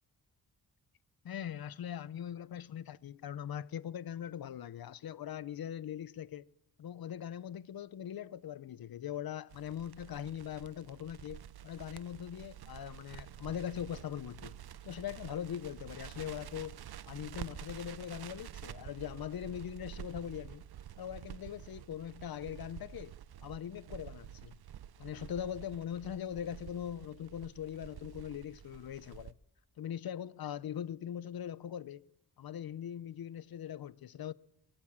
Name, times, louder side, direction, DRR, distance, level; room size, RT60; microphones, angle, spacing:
voice 1, 1.2-6.4 6.8-14.5 14.8-16.8 17.1-20.6 21.0-23.2 23.4-24.5 25.0-29.3 29.8-32.0 32.4-34.3, left 10 dB, 65° left, 0.7 m, -41 dB
Crackle, 9.5-29.3, right 10 dB, 75° right, 0.7 m, -49 dB
24.0 x 18.0 x 7.4 m
wide cardioid pair, 170°, 39 cm